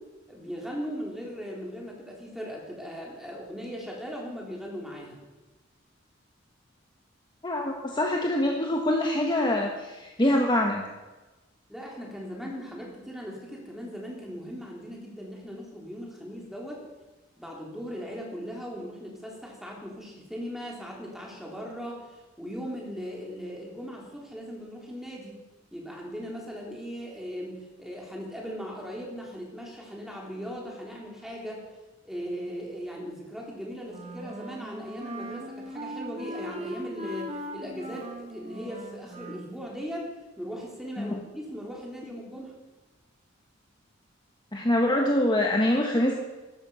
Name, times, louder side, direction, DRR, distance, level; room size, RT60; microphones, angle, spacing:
voice 1, 0.3-5.2 11.7-16.8 17.4-25.4 25.7-31.6 32.1-40.1 40.4-42.5, equal, ahead, -2 dB, 3.5 m, -38 dB
voice 2, 7.4-10.8 41.0-41.2 44.5-46.1, left 1 dB, 25° left, 1 dB, 1.3 m, -24 dB
Wind instrument woodwind instrument, 33.9-39.5, right 1 dB, 35° right, 1.8 m, -39 dB
14.0 x 12.0 x 5.6 m, 1.1 s
head